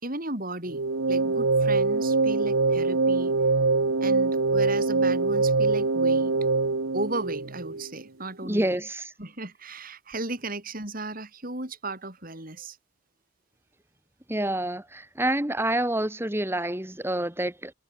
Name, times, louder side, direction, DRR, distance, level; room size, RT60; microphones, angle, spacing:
voice 1, 0.0-3.3 4.0-6.3 6.9-8.8 9.2-12.8, right 2 dB, 45° right, 4.9 m, -35 dB
sound 1, 0.7-7.9, right 3 dB, 85° right, 1.2 m, -24 dB
voice 2, 8.4-9.1 14.3-17.7, right 1 dB, 10° right, 1.9 m, -28 dB
head